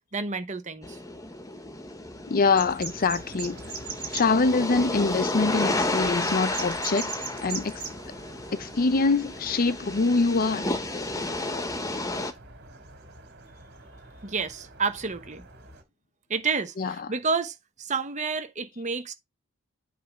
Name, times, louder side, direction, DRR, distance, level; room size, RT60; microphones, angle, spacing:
voice 1, 0.1-1.0 14.2-15.4 16.3-19.1, right 4 dB, 35° right, 1.0 m, -30 dB
sound 1, 0.8-12.3, left 2 dB, 15° left, 1.2 m, -32 dB
voice 2, 2.3-3.6 4.1-7.1 7.4-7.8 8.6-10.7 16.8-17.1, left 4 dB, 45° left, 0.6 m, -24 dB
sound 2, 2.5-15.8, right 5 dB, 50° right, 3.5 m, -42 dB
8.5 x 3.3 x 6.1 m
head